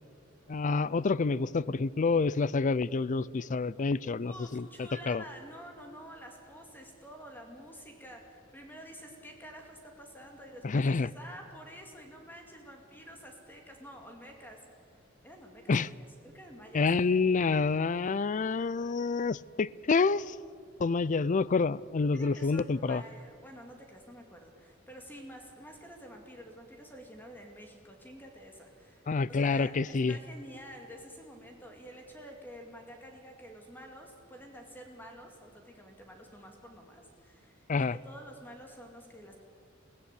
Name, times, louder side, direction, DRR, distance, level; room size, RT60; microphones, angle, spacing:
voice 1, 0.5-4.7 5.1-5.2 10.6-11.1 15.7-15.9 16.7-20.2 20.8-23.0 29.1-30.2 37.7-38.0, left 4 dB, 40° left, 21 dB, 0.4 m, -28 dB
voice 2, 4.2-14.6 15.2-16.9 19.9-20.0 21.0-21.3 22.1-39.4, equal, 10° left, 2 dB, 2.2 m, -49 dB
22.5 x 16.0 x 8.4 m, 2.3 s
head